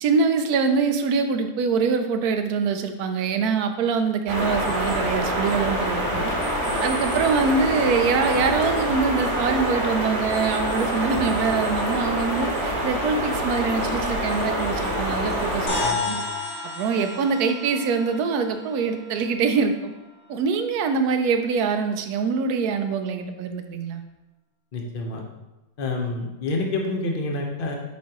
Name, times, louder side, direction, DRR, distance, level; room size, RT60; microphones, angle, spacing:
voice 1, 0.0-6.3 6.8-16.2 16.8-19.9 20.3-24.0, right 5 dB, 70° right, 7 dB, 0.9 m, -24 dB
sound 1, 4.3-15.9, equal, 20° right, 1.0 m, -25 dB
sound 2, 15.7-20.3, left 3 dB, 55° left, 1.7 m, -33 dB
voice 2, 15.8-16.2 24.7-25.2 25.8-27.8, left 2 dB, 40° left, 1 dB, 0.8 m, -28 dB
7.3 x 5.1 x 2.9 m, 1.0 s
omnidirectional pair, 2.0 m